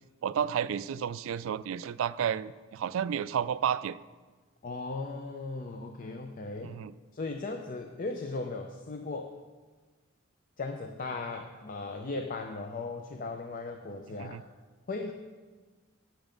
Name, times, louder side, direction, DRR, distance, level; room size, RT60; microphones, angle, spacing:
voice 1, 0.2-4.0 6.6-6.9 14.2-14.4, right 8 dB, 75° right, 16 dB, 0.3 m, -31 dB
voice 2, 4.6-6.8 7.1-9.3 10.6-14.4 14.9-15.1, left 3 dB, 45° left, 5 dB, 0.5 m, -37 dB
8.8 x 7.9 x 5.2 m, 1.3 s
head